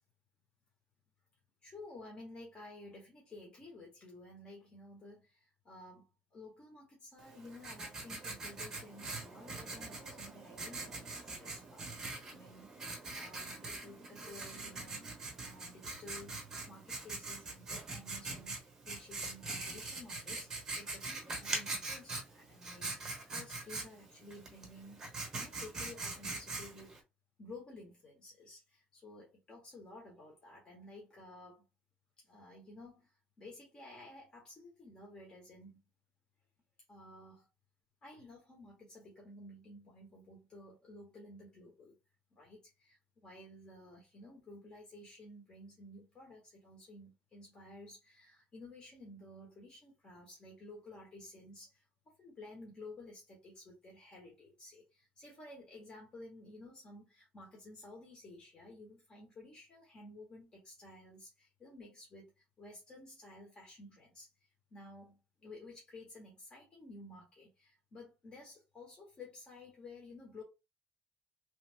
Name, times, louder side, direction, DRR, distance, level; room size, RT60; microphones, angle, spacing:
voice 1, 1.6-12.7 13.1-27.0 27.4-31.6 32.2-35.8 36.9-37.5 38.0-42.0 42.3-43.0 43.2-62.3 62.6-70.4, left 2 dB, 25° left, 1.2 m, -53 dB
Writing, 7.2-27.0, right 3 dB, 20° right, 1.1 m, -43 dB
3.1 x 2.2 x 3.5 m
cardioid pair, 175°, 4 cm